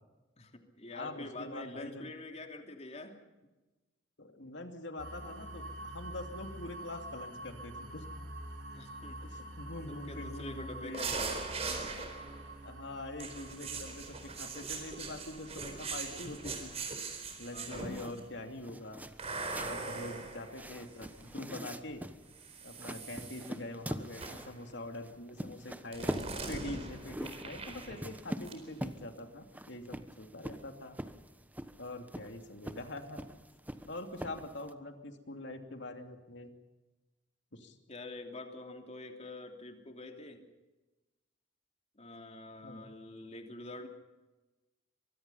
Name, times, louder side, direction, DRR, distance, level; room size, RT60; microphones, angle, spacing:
voice 1, 0.4-3.2 8.7-9.2 9.9-11.4 11.8-12.1 17.5-18.0 37.9-40.5 41.9-43.9, left 2 dB, 35° left, 4 dB, 3.0 m, -46 dB
voice 2, 0.9-2.1 4.2-8.0 9.2-11.0 12.6-16.7 17.4-19.0 19.6-22.0 22.6-26.1 26.5-31.0 31.8-33.2 33.9-36.5 37.5-37.8 42.6-42.9, left 2 dB, 65° left, 5 dB, 2.9 m, -44 dB
sound 1, 5.0-18.8, right 1 dB, 85° right, 6.3 m, -47 dB
sound 2, 10.9-12.5 13.2-18.2 19.2-21.3 22.3-23.5 24.2-24.6 25.9-28.2 28.4-28.6, right 4 dB, 35° right, 4.3 m, -41 dB
sound 3, 17.7-34.7, equal, 10° right, 1.1 m, -44 dB
24.5 x 22.5 x 5.7 m, 1.1 s
head